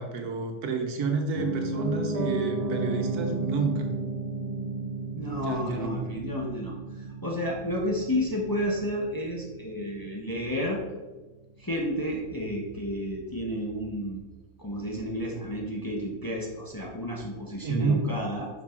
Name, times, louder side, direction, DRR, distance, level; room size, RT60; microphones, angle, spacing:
voice 1, 0.0-3.9 5.3-6.1 17.6-18.0, right 4 dB, 85° right, 3 dB, 1.5 m, -30 dB
Piano, 1.3-11.3 11.6-11.7, right 2 dB, 35° right, 1.9 m, -34 dB
voice 2, 5.1-10.8 11.6-14.2 14.6-18.5, equal, 15° left, -2 dB, 0.8 m, -31 dB
6.1 x 5.5 x 4.4 m, 1.2 s
omnidirectional pair, 1.6 m